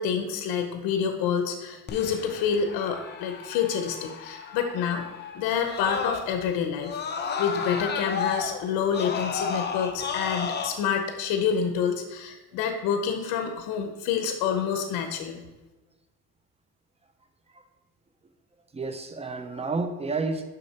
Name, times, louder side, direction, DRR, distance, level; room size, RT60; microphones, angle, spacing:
voice 1, 0.0-5.1 5.3-7.0 7.4-15.4, left 7 dB, 80° left, 6 dB, 0.8 m, -28 dB
Screaming, 1.9-6.5 6.8-10.7, left 5 dB, 30° left, 0.7 m, -33 dB
voice 2, 18.7-20.4, right 3 dB, 20° right, 8 dB, 0.5 m, -30 dB
6.6 x 5.8 x 4.2 m, 1.1 s
cardioid pair, 130°, 35 cm